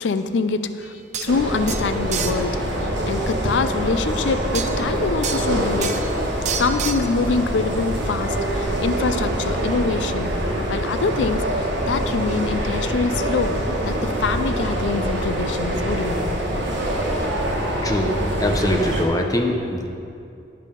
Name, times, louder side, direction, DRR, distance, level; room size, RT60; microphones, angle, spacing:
voice 1, 0.0-6.0 6.6-10.3 10.7-16.4, left 4 dB, 80° left, 10 dB, 0.4 m, -25 dB
sound 1, 0.8-0.9 1.1-1.3 1.7-2.4 4.5-4.7 5.2-5.5 5.8-6.1 6.5-7.1, right 7 dB, 40° right, 0.5 m, -28 dB
sound 2, 1.3-19.1, right 1 dB, 75° right, 1.4 m, -24 dB
voice 2, 17.8-19.9, left 1 dB, 20° left, 3 dB, 0.7 m, -22 dB
11.0 x 5.5 x 5.2 m, 2.6 s
head